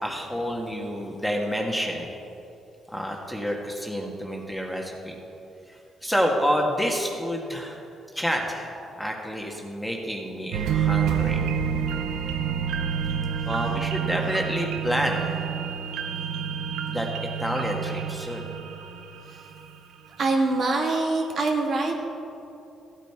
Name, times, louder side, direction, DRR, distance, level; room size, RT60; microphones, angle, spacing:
voice 1, 0.0-2.1 2.9-5.2 5.7-7.8 8.1-11.5 13.4-15.5 16.9-17.1 17.4-18.5, equal, ahead, 0 dB, 1.6 m, -29 dB
sound 1, 10.5-19.9 20.3-20.4, right 8 dB, 90° right, 0.7 m, -28 dB
voice 2, 20.2-22.0, right 3 dB, 55° right, 0 dB, 1.8 m, -25 dB
15.0 x 9.2 x 4.6 m, 2.8 s
cardioid pair, 90°, 0 cm